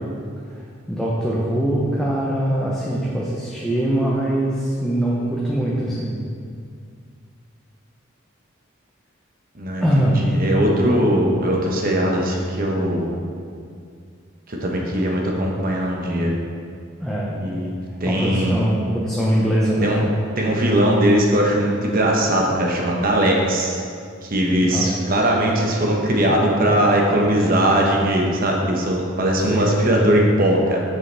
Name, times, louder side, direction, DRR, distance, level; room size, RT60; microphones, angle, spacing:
voice 1, 0.9-6.2 9.8-10.2 10.8-11.1 17.0-17.4 18.1-19.9 24.6-25.0 29.5-29.8, right 1 dB, 5° left, -6 dB, 0.7 m, -22 dB
voice 2, 9.5-13.1 14.5-16.3 17.3-17.7 18.0-18.6 19.8-20.0 20.4-23.8 24.2-30.8, right 1 dB, 45° right, -1 dB, 1.0 m, -20 dB
7.4 x 6.6 x 3.4 m, 2.2 s
head